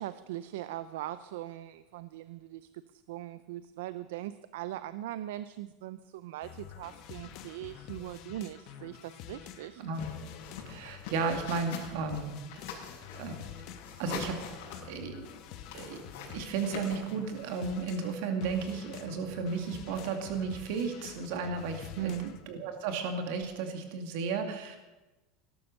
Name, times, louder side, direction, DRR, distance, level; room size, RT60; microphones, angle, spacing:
voice 1, 0.0-2.7 3.1-9.8 22.0-22.3, right 14 dB, 85° right, 14 dB, 0.6 m, -40 dB
sound 1, 6.4-22.4, left 9 dB, 45° left, 1.3 m, -47 dB
voice 2, 9.8-10.1 10.7-12.7 13.1-13.4 14.0-14.4 14.9-15.3 15.7-16.0 16.3-24.8, right 4 dB, 60° right, 5 dB, 2.3 m, -34 dB
sound 2, 9.9-18.1, left 6 dB, 70° left, 5.0 m, -45 dB
18.5 x 11.5 x 6.6 m, 1.1 s
supercardioid pair, 175°, 0 cm